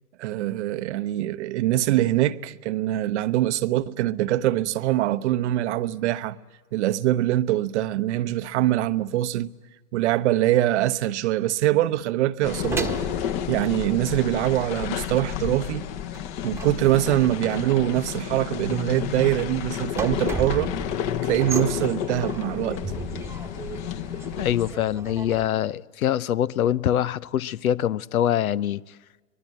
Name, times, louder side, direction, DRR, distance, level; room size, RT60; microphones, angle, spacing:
voice 1, 0.2-6.4 6.7-9.5 9.9-12.9 13.5-15.8 16.4-20.7 21.2-22.8, right 14 dB, 50° right, 0.9 m, -23 dB
sound 1, 12.4-24.7, left 10 dB, 40° left, 1.4 m, -31 dB
sound 2, 12.4-14.7 14.9-25.5, right 4 dB, 5° right, 1.3 m, -35 dB
voice 2, 24.4-28.8, left 11 dB, 70° left, 0.8 m, -24 dB
24.0 x 21.5 x 9.1 m
hypercardioid pair, 115°, 45 cm